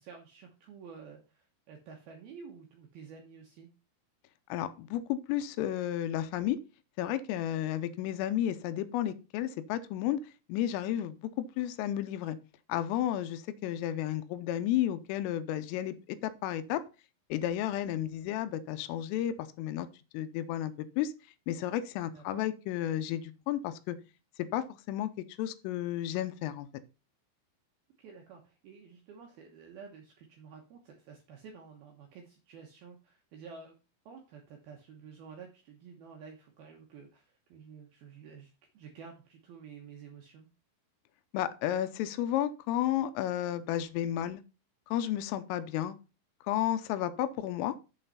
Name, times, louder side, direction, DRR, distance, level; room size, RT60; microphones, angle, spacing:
voice 1, 0.0-3.7 22.1-22.4 28.0-33.7 34.1-40.5, right 6 dB, 75° right, 1 dB, 2.3 m, -51 dB
voice 2, 4.5-6.6 7.0-10.2 10.5-12.4 12.7-15.9 16.2-16.8 17.3-19.9 20.1-21.1 21.5-24.0 24.5-25.1 25.4-26.7 41.3-44.4 44.9-46.0 46.5-47.7, left 12 dB, 85° left, 12 dB, 3.2 m, -32 dB
7.4 x 5.5 x 5.5 m, 0.32 s
omnidirectional pair, 5.9 m